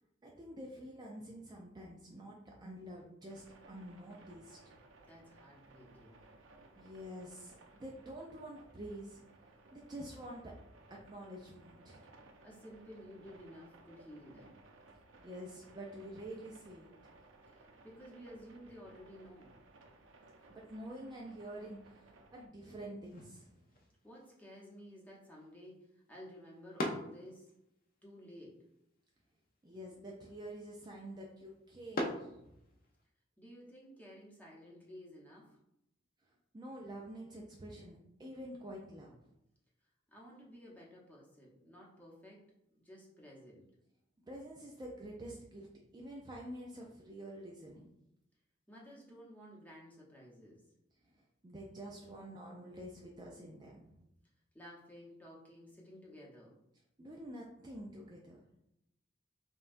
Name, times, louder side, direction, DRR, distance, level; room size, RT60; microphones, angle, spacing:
voice 1, 0.2-4.7 6.8-9.2 9.7-10.5 10.9-12.0 15.2-16.9 20.5-23.6 29.6-32.5 36.5-39.1 44.3-45.7 45.9-47.9 51.1-54.0 57.0-58.4, right 1 dB, 20° right, -2 dB, 0.4 m, -48 dB
sound 1, 3.3-22.5, right 2 dB, 85° right, 0.5 m, -60 dB
voice 2, 5.1-6.2 12.4-14.6 17.5-19.6 24.0-27.5 28.0-28.7 33.4-35.6 40.1-43.8 48.7-50.7 54.5-56.6, equal, 10° left, -4 dB, 0.9 m, -54 dB
sound 2, 23.0-33.1, left 1 dB, 50° left, 0.5 m, -46 dB
5.3 x 2.3 x 2.5 m, 0.83 s
head